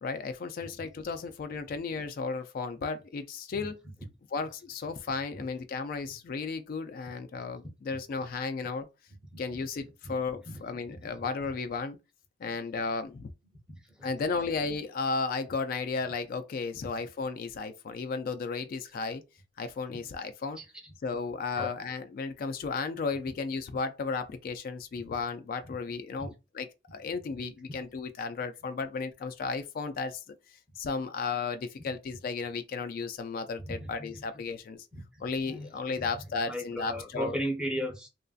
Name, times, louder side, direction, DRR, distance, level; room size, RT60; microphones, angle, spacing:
voice 1, 0.0-3.8 4.3-8.9 9.4-12.0 12.4-13.3 14.0-19.2 19.6-20.6 21.0-30.3 30.8-34.9 35.2-37.4, left 4 dB, 55° left, 0.3 m, -34 dB
voice 2, 9.3-9.6 10.0-10.1 10.5-10.6 10.9-11.3 12.4-12.6 13.7-14.1 19.9-20.1 20.6-20.7 21.6-21.7 25.0-25.1 26.2-26.3 33.6-34.2 34.9-35.0 35.5-35.7 36.0-36.1 36.5-38.1, equal, 5° right, 0.7 m, -37 dB
3.0 x 2.5 x 2.4 m
head